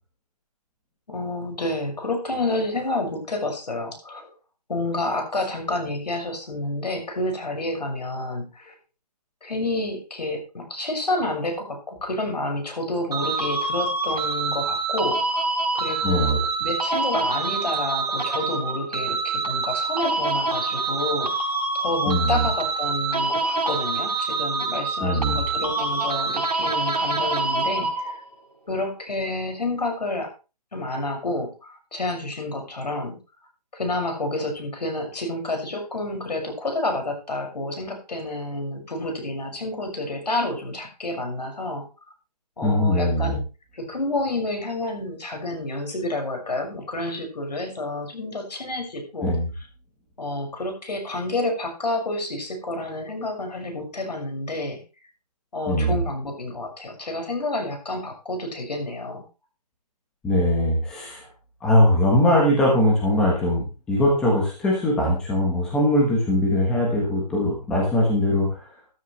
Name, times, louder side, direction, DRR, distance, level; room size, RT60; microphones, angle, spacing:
voice 1, 1.1-4.3 4.7-8.7 9.4-15.5 15.7-28.2 28.7-30.3 30.7-33.2 33.7-41.8 42.6-43.4 43.7-49.7 50.2-54.8 55.5-59.2, left 2 dB, 80° left, 3 dB, 6.3 m, -29 dB
sound 1, 13.1-28.3, right 3 dB, 70° right, 4.4 m, -26 dB
voice 2, 16.0-16.4 22.1-22.4 25.0-25.4 42.6-43.3 49.2-49.5 55.7-55.9 60.2-61.2 61.6-68.6, left 1 dB, 5° left, -3 dB, 1.2 m, -21 dB
13.0 x 13.0 x 3.3 m, 0.32 s
hypercardioid pair, 180°, 21 cm